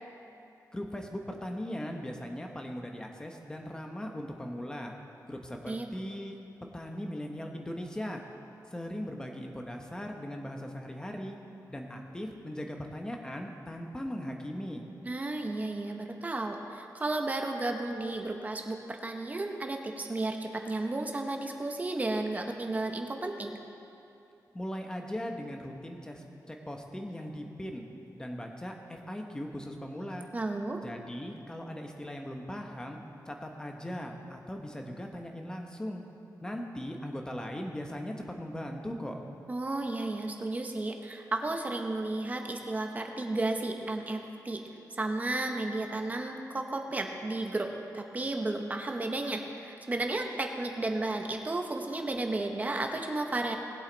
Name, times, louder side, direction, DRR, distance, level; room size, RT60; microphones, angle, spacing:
voice 1, 0.7-4.9 5.3-6.4 6.7-8.2 8.7-11.4 11.7-14.8 24.5-27.8 28.2-30.3 30.8-33.0 33.3-36.0 36.4-39.2, equal, 10° left, 2 dB, 1.0 m, -39 dB
voice 2, 15.0-23.6 30.3-30.8 39.5-44.6 44.9-53.6, right 2 dB, 25° right, 3 dB, 0.9 m, -33 dB
19.5 x 8.0 x 4.0 m, 2.7 s
wide cardioid pair, 165°, 7 cm